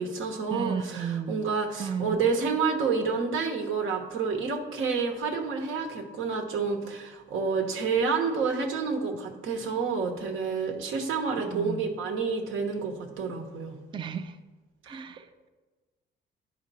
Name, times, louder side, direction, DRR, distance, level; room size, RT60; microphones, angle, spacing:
voice 1, 0.0-13.8 14.9-15.0, right 5 dB, 85° right, 1.2 m, -29 dB
voice 2, 0.5-1.4 1.8-2.2 11.4-11.9 13.9-14.4 14.8-15.5, right 6 dB, 25° right, 0.4 m, -34 dB
10.5 x 5.0 x 4.2 m
cardioid pair, 90°, 20 cm